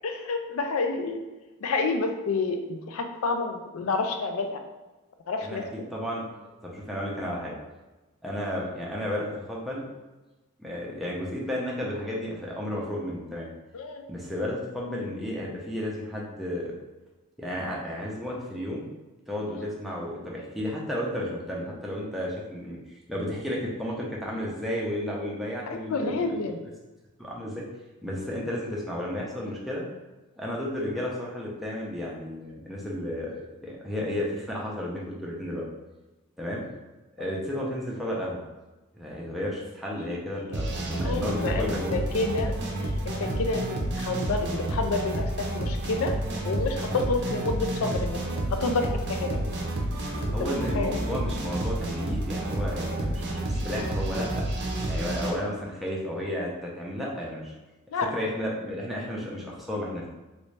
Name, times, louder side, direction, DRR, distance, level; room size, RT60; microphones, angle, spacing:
voice 1, 0.0-1.2 1.6-4.6 5.3-5.6 13.7-14.0 19.6-19.7 25.7-26.6 37.2-37.3 40.0-40.2 41.0-42.5 43.1-46.1 46.4-49.4 50.4-51.0 57.9-58.1, left 3 dB, 65° left, 5 dB, 0.4 m, -29 dB
voice 2, 5.9-6.3 6.6-7.5 8.2-9.9 10.6-13.5 14.1-16.7 17.4-18.9 19.3-22.8 23.1-26.7 27.2-27.7 28.0-29.9 30.4-35.7 36.4-36.7 37.2-38.4 38.9-42.0 49.4-49.5 50.3-54.5 54.9-57.5 58.1-60.1, left 1 dB, ahead, -5 dB, 0.5 m, -33 dB
sound 1, 40.5-55.3, right 1 dB, 50° right, 0.6 m, -30 dB
3.1 x 2.6 x 3.2 m, 1.1 s
head